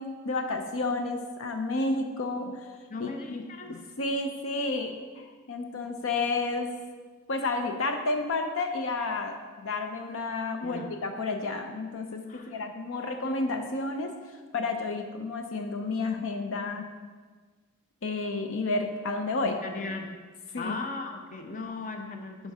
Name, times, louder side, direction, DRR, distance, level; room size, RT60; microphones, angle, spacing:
voice 1, 0.0-2.7 3.0-6.8 7.3-14.2 14.5-16.9 18.0-19.6 20.5-20.8, left 3 dB, 70° left, 5 dB, 0.7 m, -31 dB
voice 2, 2.9-3.7 10.6-10.9 12.3-12.5 19.6-20.1 20.6-22.5, left 3 dB, 40° left, 5 dB, 0.7 m, -37 dB
9.0 x 5.3 x 4.8 m, 1.5 s
head